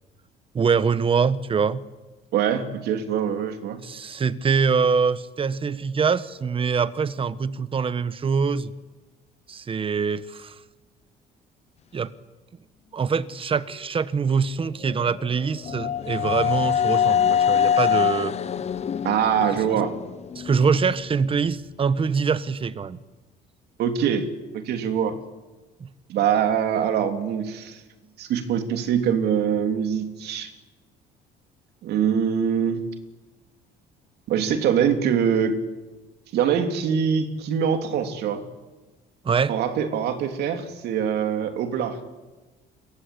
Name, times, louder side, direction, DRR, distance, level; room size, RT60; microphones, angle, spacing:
voice 1, 0.5-1.8 3.8-8.7 9.5-10.5 11.9-12.1 12.9-18.4 19.7-19.8 20.3-23.0 25.8-25.9 39.2-39.5, right 5 dB, 30° right, 1.3 m, -24 dB
voice 2, 2.3-3.8 19.0-20.0 23.8-24.2 24.6-25.1 26.1-27.8 28.2-30.5 31.8-32.8 34.3-35.6 36.3-38.4 39.5-42.0, right 8 dB, 75° right, 3.0 m, -23 dB
sound 1, 14.8-20.7, left 8 dB, 40° left, 0.9 m, -24 dB
28.0 x 23.0 x 8.5 m
cardioid pair, 110°, 17 cm